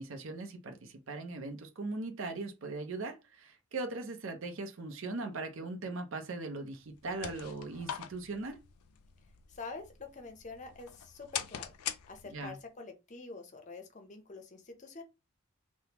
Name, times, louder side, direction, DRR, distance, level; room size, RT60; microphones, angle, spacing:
voice 1, 0.0-8.6 12.3-12.6, right 3 dB, 60° right, 0.6 m, -39 dB
sound 1, 6.8-12.6, left 10 dB, 90° left, 0.4 m, -43 dB
voice 2, 9.5-15.0, left 3 dB, 35° left, 0.5 m, -47 dB
3.4 x 2.0 x 2.9 m
head